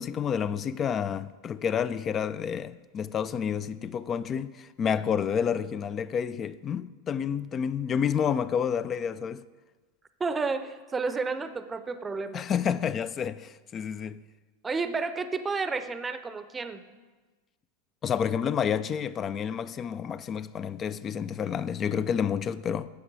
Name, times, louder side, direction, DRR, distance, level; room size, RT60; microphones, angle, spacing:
voice 1, 0.0-9.4 12.3-14.2 18.0-22.9, left 7 dB, 30° left, 0.3 m, -29 dB
voice 2, 10.2-12.4 14.6-16.8, right 4 dB, 20° right, 0.6 m, -31 dB
9.8 x 7.1 x 4.8 m
hypercardioid pair, 90°, 0 cm